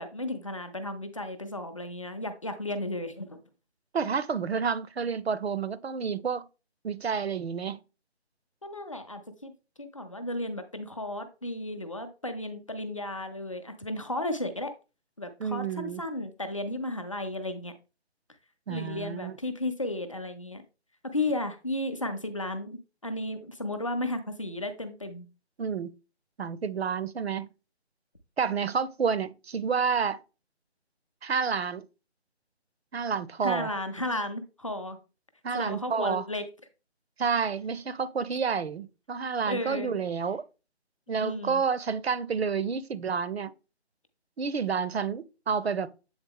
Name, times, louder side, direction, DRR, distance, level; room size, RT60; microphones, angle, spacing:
voice 1, 0.0-3.4 8.6-9.5 9.8-14.7 15.2-17.7 18.7-20.6 21.0-25.3 33.4-35.0 35.5-36.4 39.5-39.9 41.2-41.6, left 1 dB, 30° left, 0.6 m, -34 dB
voice 2, 3.9-6.4 6.8-7.8 15.4-16.0 18.7-19.3 25.6-25.9 26.4-27.5 28.4-30.2 31.2-31.8 32.9-33.7 35.4-36.2 37.2-40.4 41.1-43.5 44.4-45.9, right 6 dB, 65° right, 0.6 m, -29 dB
7.9 x 3.8 x 3.6 m
figure-of-eight pair, 170°, 34 cm